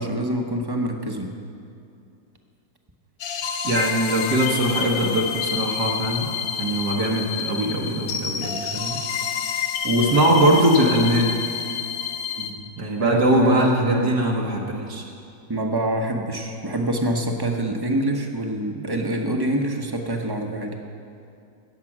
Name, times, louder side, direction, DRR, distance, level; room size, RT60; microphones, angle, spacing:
voice 1, 0.0-1.3 13.0-14.1 15.5-20.7, right 1 dB, 20° right, 3 dB, 0.7 m, -26 dB
sound 1, 3.2-12.5, left 8 dB, 65° left, 1.2 m, -28 dB
voice 2, 3.6-6.3 6.6-9.0 9.8-11.3 12.4-15.0, right 1 dB, 80° right, -2 dB, 1.8 m, -21 dB
16.5 x 7.4 x 6.0 m, 2.6 s
omnidirectional pair, 1.7 m